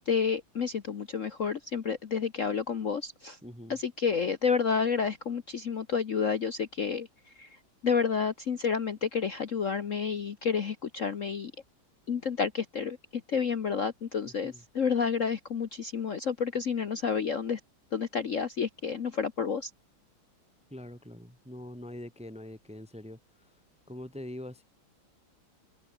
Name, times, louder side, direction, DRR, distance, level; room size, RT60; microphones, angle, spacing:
voice 1, 0.0-3.4 3.7-7.1 7.4-7.5 7.8-11.5 12.1-13.0 13.3-17.6 17.9-19.7, left 6 dB, 45° left, 1.2 m, -30 dB
voice 2, 3.4-3.8 14.2-14.6 20.7-23.5 23.9-24.6, left 1 dB, 5° right, 1.3 m, -44 dB
omnidirectional pair, 2.2 m